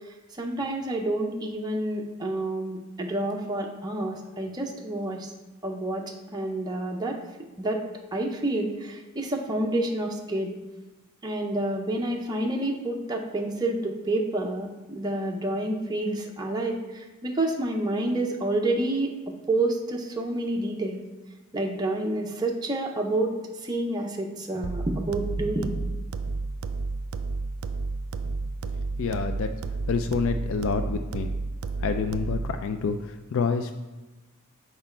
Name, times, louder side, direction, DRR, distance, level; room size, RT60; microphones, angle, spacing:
voice 1, 0.4-5.3 5.6-7.2 7.6-7.8 8.1-10.6 11.2-19.1 19.5-21.0 21.5-23.3 23.6-25.8, right 1 dB, 20° right, 0 dB, 0.6 m, -28 dB
sound 1, 24.6-32.6, right 3 dB, 70° right, 0.4 m, -31 dB
voice 2, 29.0-29.5 29.9-31.3 31.8-33.7, left 5 dB, 60° left, 8 dB, 0.3 m, -28 dB
6.0 x 4.4 x 4.3 m, 1.1 s
head